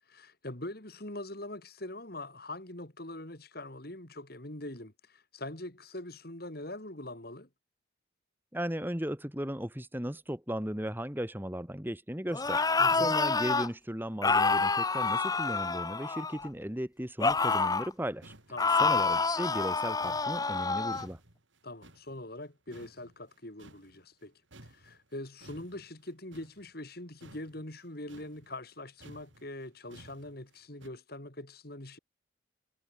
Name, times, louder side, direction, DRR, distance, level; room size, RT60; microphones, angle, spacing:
voice 1, 0.1-7.5 12.8-13.1 18.5-19.0 21.6-24.3 24.6-32.0, left 1 dB, 50° left, 2.9 m, -43 dB
voice 2, 8.5-18.3 18.8-21.2, equal, 10° right, 1.7 m, -36 dB
sound 1, 12.3-13.7 14.2-16.5 17.2-17.9 18.6-21.1, left 4 dB, 20° left, 0.8 m, -28 dB
sound 2, 17.9-18.0 18.2-22.5 22.7-24.3 24.5-30.9, right 1 dB, 70° right, 5.0 m, -56 dB
head